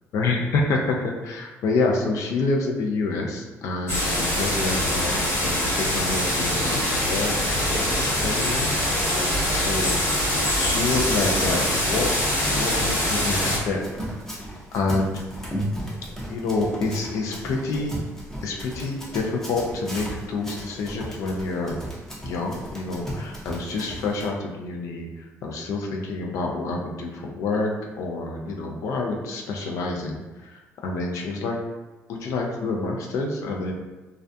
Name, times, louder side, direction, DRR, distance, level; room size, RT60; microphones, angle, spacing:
voice 1, 0.1-7.4 7.7-8.8 9.1-10.0 10.6-12.1 12.5-13.8 14.7-15.2 16.3-18.1 18.4-21.8 22.2-25.1 25.4-27.7 28.0-31.6 32.1-33.7, left 3 dB, 75° left, 0 dB, 0.4 m, -28 dB
sound 1, 3.9-13.6, left 1 dB, 55° left, 1.3 m, -23 dB
Run, 12.6-24.3, equal, 10° left, 0.8 m, -35 dB
2.3 x 2.1 x 2.5 m, 1.2 s
cardioid pair, 95°, 6 cm